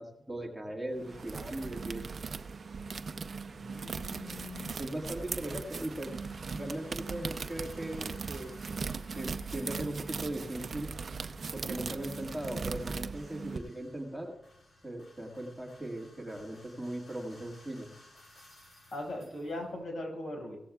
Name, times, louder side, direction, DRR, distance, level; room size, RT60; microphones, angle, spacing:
voice 1, 0.0-2.1 4.8-6.1 6.5-8.5 9.2-10.9 11.5-14.3 14.8-17.9, right 1 dB, 5° right, 0 dB, 1.8 m, -38 dB
sound 1, 0.9-19.8, left 1 dB, 45° left, 3.9 m, -60 dB
sound 2, 1.0-13.6, right 5 dB, 55° right, 0.6 m, -39 dB
voice 2, 3.5-4.8 18.9-20.6, left 1 dB, 75° left, 0 dB, 5.6 m, -40 dB
16.5 x 14.5 x 2.4 m, 0.82 s
wide cardioid pair, 130°, 0 cm